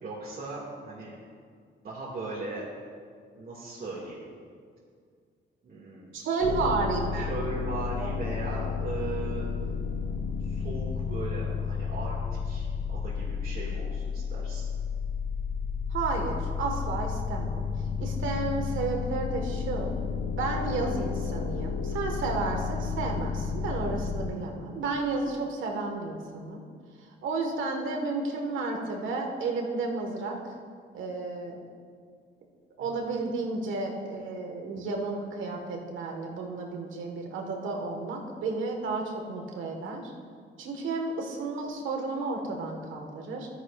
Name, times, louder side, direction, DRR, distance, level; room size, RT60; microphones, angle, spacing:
voice 1, 0.0-1.2 1.8-2.6 3.4-4.2 5.6-6.7 7.1-9.5 10.4-14.7, right 2 dB, 50° right, -6 dB, 2.1 m, -38 dB
voice 2, 6.1-7.4 8.0-8.1 15.9-17.6 18.0-19.9 20.3-26.6 27.2-30.5 30.9-31.6 32.8-40.1 40.6-43.5, right 3 dB, 80° right, 2 dB, 1.6 m, -32 dB
sound 1, 6.4-24.3, left 6 dB, 60° left, 0.9 m, -32 dB
13.0 x 10.0 x 2.5 m, 2.1 s
cardioid pair, 90°, 20 cm